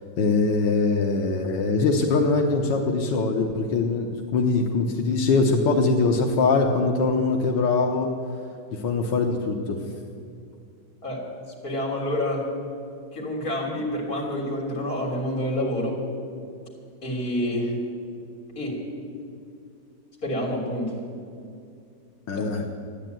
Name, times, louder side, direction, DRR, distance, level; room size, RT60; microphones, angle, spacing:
voice 1, 0.2-8.1 8.7-9.8 22.3-22.6, left 3 dB, 90° left, 2 dB, 1.7 m, -22 dB
voice 2, 11.6-12.5 13.1-16.0 17.0-17.8 18.6-18.8 20.2-20.9 22.3-22.5, left 1 dB, 55° left, -1 dB, 3.6 m, -28 dB
14.0 x 10.0 x 9.1 m, 2.4 s
omnidirectional pair, 1.9 m